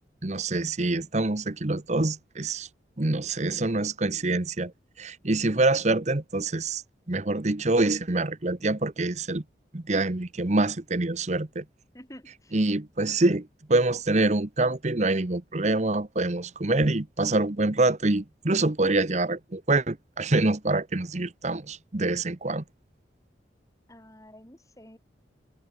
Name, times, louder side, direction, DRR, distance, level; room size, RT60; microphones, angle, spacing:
voice 1, 0.2-2.7 3.0-4.7 5.0-6.8 7.1-9.4 9.7-11.6 12.5-22.6, right 2 dB, 40° right, 1.1 m, -25 dB
voice 2, 11.9-12.6 23.9-25.0, left 1 dB, 20° left, 6.6 m, -49 dB
head